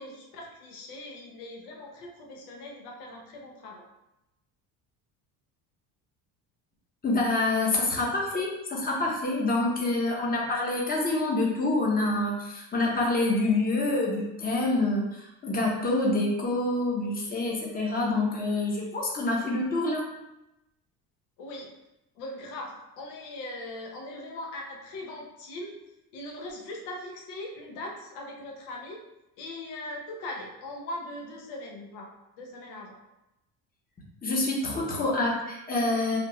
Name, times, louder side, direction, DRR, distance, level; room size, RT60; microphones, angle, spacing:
voice 1, 0.0-3.9 21.4-21.7 22.2-25.8 26.1-29.0 29.4-33.0, left 1 dB, 75° left, 0 dB, 0.8 m, -40 dB
voice 2, 7.0-20.1 34.2-36.2, left 2 dB, 20° left, -2 dB, 0.9 m, -27 dB
3.3 x 2.4 x 3.0 m, 0.92 s
supercardioid pair, 95°, 42 cm